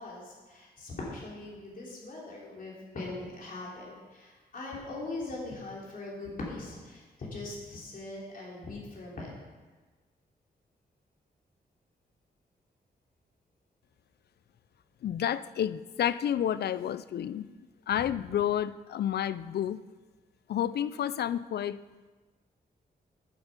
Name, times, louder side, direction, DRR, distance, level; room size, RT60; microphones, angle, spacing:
voice 1, 0.0-9.3, left 2 dB, 55° left, -4 dB, 3.2 m, -41 dB
voice 2, 15.0-17.5 17.9-19.8 20.5-21.8, left 10 dB, 70° left, 16 dB, 0.4 m, -30 dB
11.0 x 7.3 x 5.3 m, 1.3 s
wide cardioid pair, 105°, 17 cm